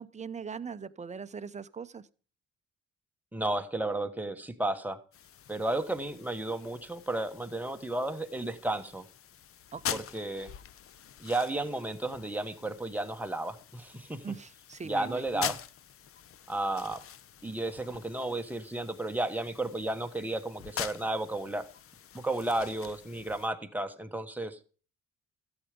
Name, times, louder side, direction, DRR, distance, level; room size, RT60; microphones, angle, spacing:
voice 1, 0.0-2.0 9.7-10.0 14.2-15.5, right 6 dB, 25° right, 0.7 m, -41 dB
voice 2, 3.3-5.0 5.5-9.0 9.9-10.5 11.2-14.2 14.8-15.6 16.5-17.0 17.4-21.6 22.1-24.6, right 2 dB, 5° right, 1.3 m, -33 dB
sound 1, 5.1-23.5, left 9 dB, 45° left, 0.6 m, -44 dB
13.0 x 8.0 x 5.1 m
cardioid pair, 90°, 30 cm